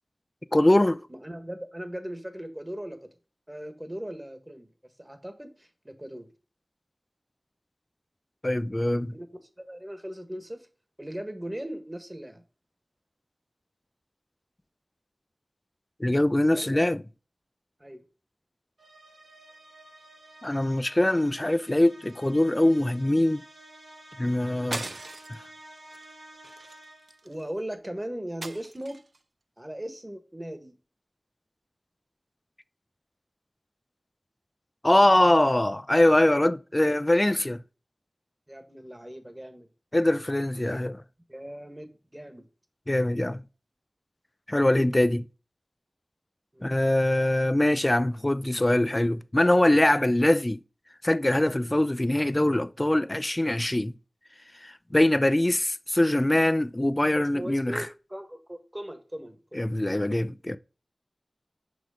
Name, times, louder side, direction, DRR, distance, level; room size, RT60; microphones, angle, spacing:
voice 1, 0.5-1.0 8.4-9.1 16.0-17.0 20.4-23.4 24.2-24.9 25.3-25.4 34.8-37.6 39.9-41.0 42.9-43.4 44.5-45.3 46.6-50.6 51.0-53.9 54.6-57.9 59.5-60.6, left 1 dB, 25° left, 0.5 m, -23 dB
voice 2, 1.1-3.0 3.5-4.7 5.0-6.3 9.1-10.7 11.0-12.4 16.5-16.9 17.8-18.0 21.1-21.3 27.2-29.0 29.6-30.7 38.5-39.7 41.3-42.5 46.5-46.8 57.1-59.7, right 1 dB, 20° right, 1.6 m, -39 dB
sound 1, 18.8-27.3, right 1 dB, 85° right, 3.2 m, -51 dB
sound 2, 24.7-25.5 25.9-26.1 26.4-27.4 28.4-29.2, right 3 dB, 70° right, 0.5 m, -38 dB
6.2 x 5.1 x 4.9 m
wide cardioid pair, 45°, 0 cm